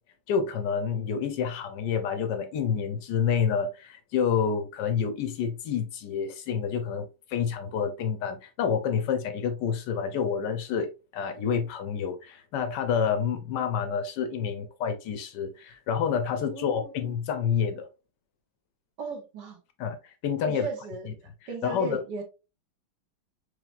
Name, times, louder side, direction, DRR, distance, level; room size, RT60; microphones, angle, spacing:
voice 1, 0.3-10.9 11.1-17.9 19.8-20.7 21.0-21.1 21.6-22.0, left 7 dB, 75° left, 1.0 m, -28 dB
voice 2, 16.5-16.9 19.0-19.6 20.4-21.2 21.5-22.2, right 4 dB, 60° right, 1.6 m, -36 dB
4.7 x 3.3 x 2.4 m
omnidirectional pair, 2.3 m